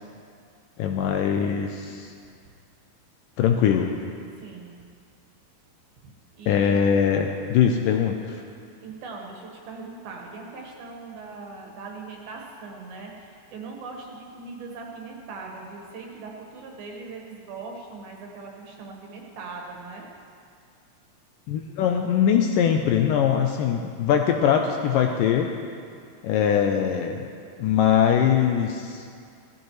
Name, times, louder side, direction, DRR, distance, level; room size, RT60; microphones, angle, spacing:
voice 1, 0.8-2.1 3.4-3.9 6.5-8.4 21.5-25.5 26.2-27.2 27.6-29.0, left 8 dB, 85° left, 3 dB, 1.9 m, -22 dB
voice 2, 4.4-4.7 6.4-6.8 8.8-20.1, right 4 dB, 75° right, 0 dB, 3.2 m, -40 dB
16.5 x 14.5 x 3.2 m, 2.3 s
omnidirectional pair, 4.5 m